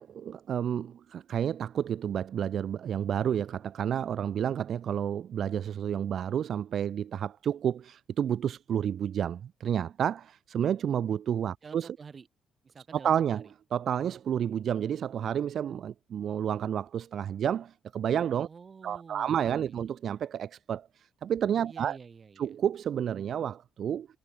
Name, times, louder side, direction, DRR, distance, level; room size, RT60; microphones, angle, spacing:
voice 1, 0.0-11.9 12.9-13.5 13.7-18.5 18.8-22.0 22.4-24.1, right 9 dB, 60° right, 0.8 m, -30 dB
voice 2, 11.6-12.3 12.6-13.5 18.5-19.8 21.6-22.5, right 5 dB, 40° right, 3.1 m, -49 dB
cardioid pair, 90°, 0 cm